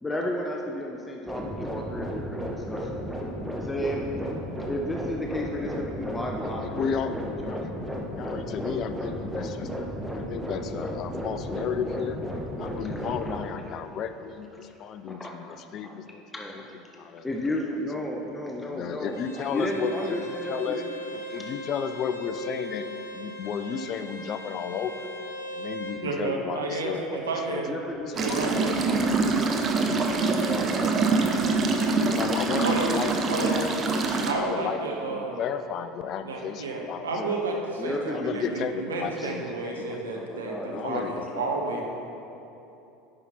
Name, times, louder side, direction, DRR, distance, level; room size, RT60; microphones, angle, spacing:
voice 1, 0.0-3.2 3.5-4.1 4.7-8.8 12.8-13.8 15.1-16.0 16.3-20.9 27.7-30.9 31.8-31.9 37.2-37.4 37.8-38.6 39.2-39.3 40.1-41.8, left 1 dB, 15° left, 0 dB, 0.8 m, -34 dB
sound 1, 1.3-13.4, equal, 5° right, 1.4 m, -34 dB
voice 2, 6.4-7.2 7.5-7.7 8.2-12.2 12.6-16.2 16.5-16.6 17.0-17.2 18.6-22.9 23.1-25.1 25.5-27.2 27.5-27.6 27.9-28.5 28.9-29.0 32.0-33.7 33.9-37.1 38.1-40.0 40.7-41.3, left 7 dB, 50° left, 10 dB, 0.5 m, -33 dB
Bowed string instrument, 19.1-26.0, equal, 85° left, 0.9 m, -39 dB
voice 3, 26.0-27.8 28.2-28.9 32.6-32.9 33.2-33.6 34.2-35.4 36.2-41.8, right 3 dB, 85° right, 1 dB, 0.8 m, -31 dB
sound 2, 28.1-34.3, right 3 dB, 35° right, 0.9 m, -25 dB
9.8 x 5.8 x 4.3 m, 2.9 s
hypercardioid pair, 75°, 0 cm